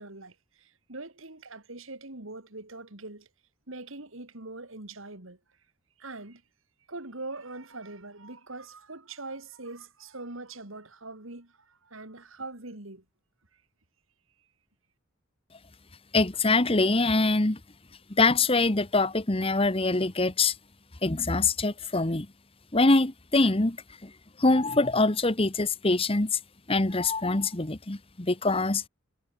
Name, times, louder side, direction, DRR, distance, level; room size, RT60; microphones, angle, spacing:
voice 1, 0.0-3.3 3.7-5.4 6.0-6.4 6.9-13.0 13.5-13.6, right 2 dB, 70° right, 3.1 m, -42 dB
voice 2, 16.1-17.6 18.1-20.5 21.0-22.3 22.7-23.8 24.0-24.1 24.4-26.4 26.7-28.8, left 3 dB, 25° left, 1.2 m, -24 dB
head